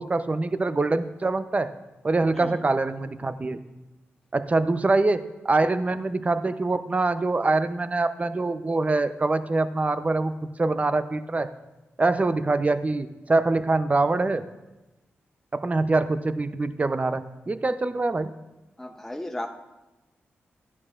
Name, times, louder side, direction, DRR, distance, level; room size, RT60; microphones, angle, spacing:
voice 1, 0.0-1.7 2.0-3.6 4.3-11.5 12.0-14.4 15.5-18.3, right 3 dB, 30° right, 11 dB, 0.6 m, -24 dB
voice 2, 18.8-19.5, left 1 dB, 10° left, 3 dB, 0.8 m, -35 dB
13.5 x 10.5 x 2.5 m, 1.0 s
cardioid pair, 60°, 5 cm